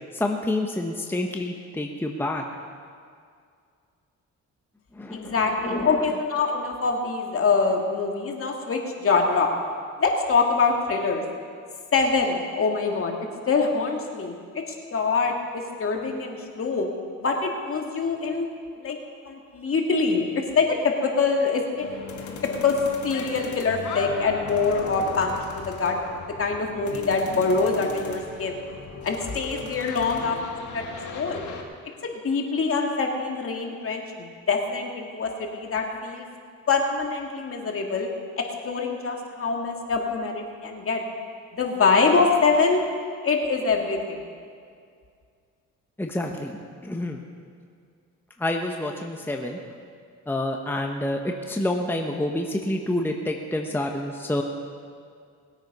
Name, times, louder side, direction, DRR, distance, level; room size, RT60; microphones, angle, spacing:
voice 1, 0.1-2.4 5.0-5.3 5.6-6.0 46.0-46.5 46.8-47.2 48.4-49.6 50.3-54.4, left 1 dB, 5° left, 2 dB, 1.1 m, -28 dB
voice 2, 5.1-9.5 10.0-11.2 11.9-14.6 14.9-16.9 17.2-18.5 18.8-19.0 19.3-21.9 22.3-22.4 22.6-22.8 23.0-26.0 26.3-28.6 29.0-30.4 30.7-31.4 32.0-36.3 36.7-38.1 38.4-41.0 41.5-42.8 43.2-44.3, left 4 dB, 45° left, 1 dB, 2.2 m, -24 dB
sound 1, 21.8-31.6, left 5 dB, 75° left, 1.8 m, -38 dB
20.0 x 8.8 x 5.5 m, 2.2 s
cardioid pair, 90°, 30 cm